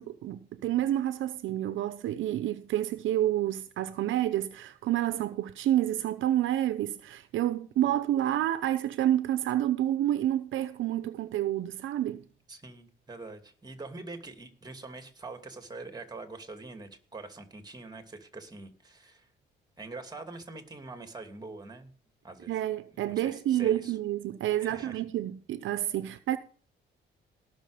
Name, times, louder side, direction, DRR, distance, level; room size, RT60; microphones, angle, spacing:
voice 1, 0.0-12.2 22.5-26.4, right 12 dB, 80° right, 0.8 m, -29 dB
voice 2, 12.5-19.3 19.8-21.9 22.2-22.6 22.9-24.0 24.6-25.1, right 3 dB, 20° right, 2.7 m, -44 dB
18.5 x 6.4 x 5.1 m
cardioid pair, 90°, 20 cm